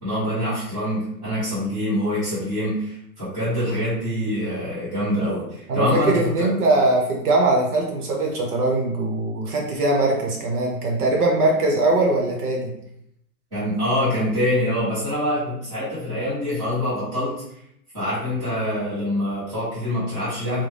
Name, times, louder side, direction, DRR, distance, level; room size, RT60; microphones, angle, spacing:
voice 1, 0.0-6.5 13.5-17.3 17.9-20.6, left 1 dB, 10° right, -13 dB, 1.1 m, -25 dB
voice 2, 5.7-12.7, right 2 dB, 70° right, -1 dB, 1.0 m, -21 dB
2.6 x 2.2 x 3.3 m, 0.74 s
hypercardioid pair, 175°, 47 cm